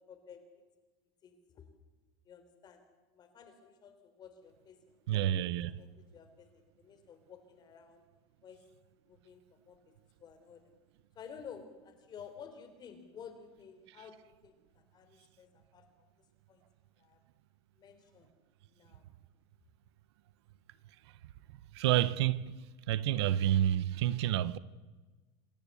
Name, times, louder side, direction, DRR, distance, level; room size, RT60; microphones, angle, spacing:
voice 1, 0.1-0.6 1.2-1.7 2.3-2.8 3.1-8.0 8.4-8.6 9.1-9.9 10.2-10.6 11.2-16.1 16.5-16.6 17.0-17.2 17.8-18.3 18.7-19.0, left 7 dB, 30° left, 3.6 m, -53 dB
voice 2, 5.1-5.7 21.7-22.5 22.9-24.6, right 12 dB, 80° right, 0.9 m, -29 dB
27.0 x 14.0 x 8.5 m
supercardioid pair, 140°, 14 cm